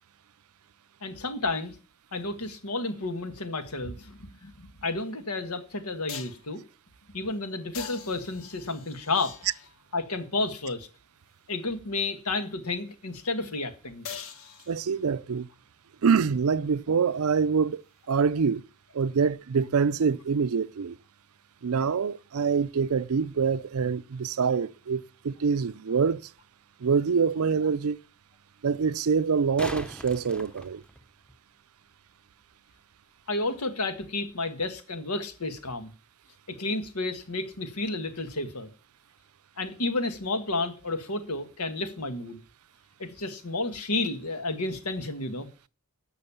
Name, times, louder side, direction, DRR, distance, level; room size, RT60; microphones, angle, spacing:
voice 1, 1.0-1.8 2.1-6.6 7.1-9.3 9.9-10.9 11.5-14.1 33.3-35.9 36.5-38.7 39.6-42.4 43.0-45.5, left 2 dB, 80° left, 1.7 m, -31 dB
sound 1, 5.0-5.1 6.1-6.5 7.7-9.9 14.1-15.2 19.0-19.1, left 8 dB, 65° left, 1.4 m, -42 dB
voice 2, 14.7-15.5 16.0-18.6 18.9-21.0 21.6-26.2 26.8-28.0 28.6-30.8, right 5 dB, 70° right, 0.5 m, -25 dB
sound 2, 26.4-26.5 29.2-31.4 34.2-34.3, equal, 5° left, 0.9 m, -40 dB
12.0 x 6.4 x 7.1 m
head